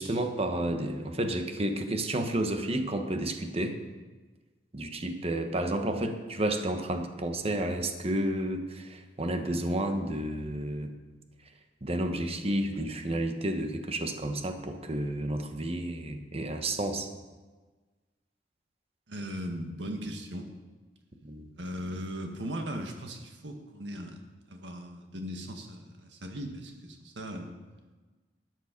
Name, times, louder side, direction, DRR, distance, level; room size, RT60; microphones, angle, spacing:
voice 1, 0.0-3.8 4.7-10.9 11.8-17.1 21.2-21.5, right 1 dB, 35° right, 6 dB, 1.2 m, -31 dB
voice 2, 19.1-20.5 21.6-24.2 24.5-27.5, equal, 80° right, 4 dB, 1.7 m, -38 dB
13.0 x 9.3 x 5.3 m, 1.3 s
head